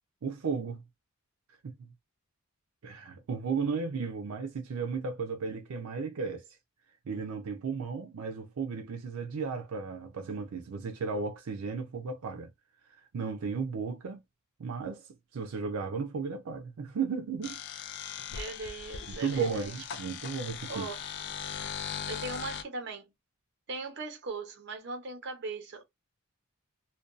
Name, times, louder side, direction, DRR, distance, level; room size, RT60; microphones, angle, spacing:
voice 1, 0.2-0.8 1.6-1.9 2.8-6.4 7.1-12.5 13.1-14.2 14.6-15.1 15.3-17.6 19.1-20.9, right 5 dB, 85° right, 0.4 m, -34 dB
sound 1, 17.4-22.6, left 7 dB, 50° left, 0.3 m, -39 dB
voice 2, 18.3-19.7 20.7-21.0 22.1-23.1 23.7-25.9, right 3 dB, 55° right, 0.8 m, -39 dB
2.5 x 2.2 x 2.4 m
head